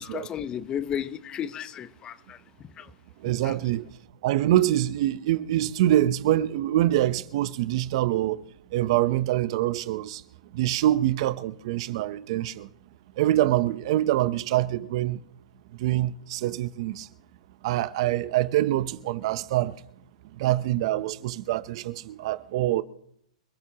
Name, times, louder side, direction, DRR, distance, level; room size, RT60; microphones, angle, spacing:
voice 1, 0.0-2.9 3.3-3.6, left 9 dB, 20° left, 0.8 m, -34 dB
voice 2, 3.2-3.9 4.2-8.4 8.7-10.2 10.5-12.7 13.2-15.2 15.8-17.1 17.6-19.8 20.3-22.8, right 14 dB, 50° right, 0.7 m, -25 dB
28.5 x 15.0 x 2.9 m
hypercardioid pair, 140°, 4 cm